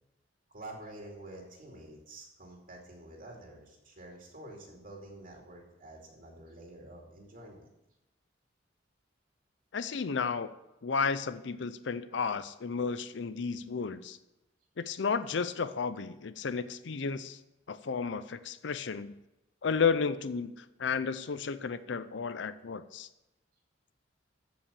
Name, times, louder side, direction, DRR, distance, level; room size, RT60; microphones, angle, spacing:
voice 1, 0.5-7.7, right 1 dB, 50° right, -1 dB, 2.5 m, -48 dB
voice 2, 9.7-10.5 10.8-14.2 14.8-17.4 17.7-19.1 19.6-23.1, left 5 dB, 65° left, 13 dB, 0.6 m, -32 dB
14.5 x 5.5 x 6.8 m, 0.96 s
head